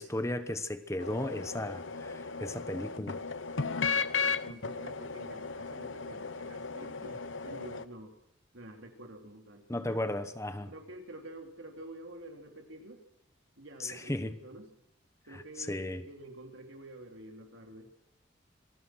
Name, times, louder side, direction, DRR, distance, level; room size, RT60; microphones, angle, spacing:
voice 1, 0.0-3.2 9.7-10.7 13.8-14.3 15.3-16.0, left 1 dB, 15° left, 10 dB, 1.0 m, -35 dB
sound 1, 1.0-7.8, left 5 dB, 80° left, 1.0 m, -35 dB
voice 2, 4.4-8.2 8.5-10.0 10.7-13.0 13.6-14.7 15.3-17.9, right 1 dB, 85° right, 3 dB, 3.7 m, -48 dB
26.5 x 19.0 x 6.3 m, 0.80 s
head